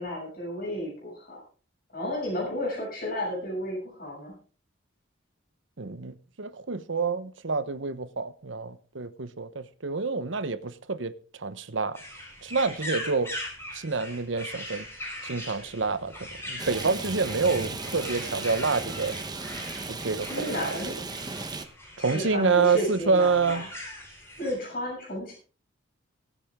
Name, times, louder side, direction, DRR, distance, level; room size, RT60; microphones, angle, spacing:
voice 1, 0.0-1.4 1.9-4.4 20.3-21.0 22.0-23.6 24.4-25.3, left 1 dB, 45° left, 6.6 m, -32 dB
voice 2, 5.8-12.0 12.4-13.3 13.7-14.8 15.2-19.2 19.9-20.8 22.0-23.6, right 4 dB, 75° right, 0.9 m, -28 dB
sound 1, 11.9-24.5, left 1 dB, 15° left, 4.7 m, -40 dB
Rain, 16.6-21.7, right 3 dB, 20° right, 1.0 m, -36 dB
21.5 x 8.5 x 3.6 m
head